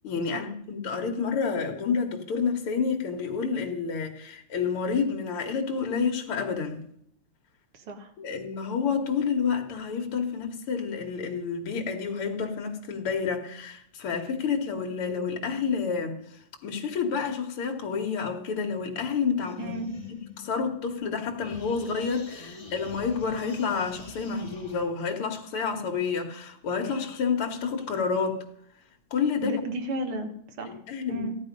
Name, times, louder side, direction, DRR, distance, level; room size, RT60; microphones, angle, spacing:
voice 1, 0.0-6.8 8.2-19.7 20.4-28.4 29.1-29.6 30.7-31.3, left 5 dB, 85° left, 2 dB, 2.2 m, -29 dB
voice 2, 7.7-8.1 19.6-19.9 29.4-30.8 31.1-31.4, right 2 dB, 85° right, 6 dB, 2.3 m, -34 dB
sound 1, 19.4-21.1 21.4-24.9, left 5 dB, 35° left, 2.7 m, -44 dB
14.5 x 11.0 x 5.2 m, 0.70 s
omnidirectional pair, 2.3 m